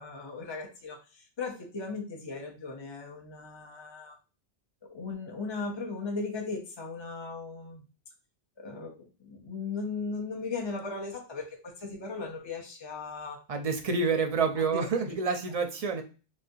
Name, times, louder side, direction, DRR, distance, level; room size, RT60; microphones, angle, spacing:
voice 1, 0.0-4.2 4.8-7.8 8.6-13.4 14.6-15.1, left 4 dB, 35° left, 0 dB, 0.5 m, -37 dB
voice 2, 13.5-16.0, right 4 dB, 45° right, 6 dB, 0.5 m, -28 dB
3.9 x 2.3 x 2.6 m, 0.33 s
omnidirectional pair, 1.1 m